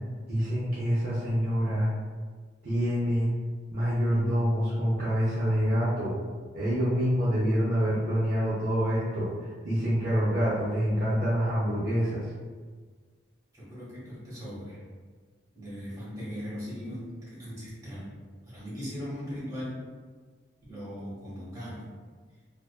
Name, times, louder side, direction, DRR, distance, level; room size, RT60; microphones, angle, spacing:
voice 1, 0.3-1.9 2.6-3.3 3.7-6.1 6.5-9.3 9.6-12.2, equal, 50° right, -9 dB, 0.6 m, -26 dB
voice 2, 13.5-14.8 15.5-18.1 18.4-19.8 20.7-21.9, equal, 15° right, -10 dB, 1.0 m, -39 dB
2.6 x 2.3 x 2.3 m, 1.5 s
head